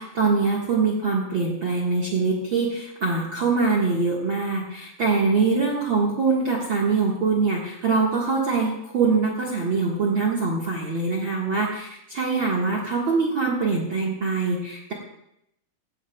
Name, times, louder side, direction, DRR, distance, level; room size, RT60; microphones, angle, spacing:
voice 1, 0.0-14.9, right 4 dB, 55° right, -2 dB, 1.4 m, -23 dB
17.0 x 15.0 x 2.3 m, 0.79 s
omnidirectional pair, 4.4 m